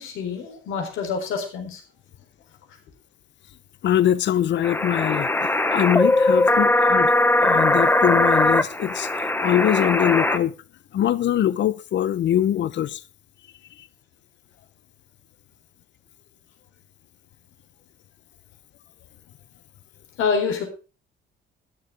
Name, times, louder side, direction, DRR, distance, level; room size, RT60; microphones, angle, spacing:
voice 1, 0.0-1.8 20.2-20.6, left 5 dB, 90° left, 4.0 m, -26 dB
voice 2, 3.8-5.3 5.7-9.1 9.4-10.6 10.9-13.0, left 11 dB, 65° left, 0.9 m, -22 dB
sound 1, 4.6-10.4, left 2 dB, 10° left, 0.9 m, -20 dB
13.5 x 11.0 x 3.5 m
cardioid pair, 90°, 20 cm